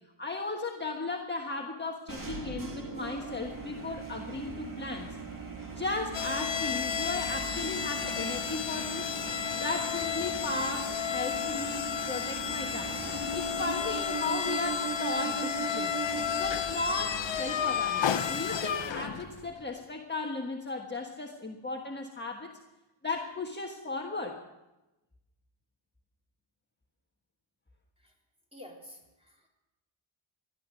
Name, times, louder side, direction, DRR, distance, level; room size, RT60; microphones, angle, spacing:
voice 1, 0.2-5.1 5.8-9.1 9.6-13.0 13.3-15.9 16.4-22.5 23.0-24.4, left 3 dB, 20° left, 0 dB, 1.4 m, -36 dB
sound 1, 2.1-19.5, right 4 dB, 40° right, 2.7 m, -40 dB
sound 2, 6.1-19.4, left 8 dB, 60° left, 1.0 m, -32 dB
voice 2, 28.5-29.5, left 1 dB, 10° right, -1 dB, 3.8 m, -50 dB
17.5 x 11.5 x 6.5 m, 1.0 s
wide cardioid pair, 100°, 49 cm